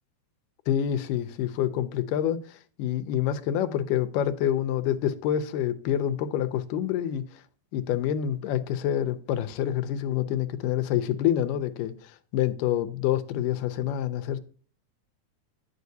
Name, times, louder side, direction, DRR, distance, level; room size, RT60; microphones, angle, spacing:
voice 1, 0.7-7.4 7.7-14.4, left 10 dB, 90° left, 2.3 m, -27 dB
9.3 x 7.0 x 2.7 m
omnidirectional pair, 3.7 m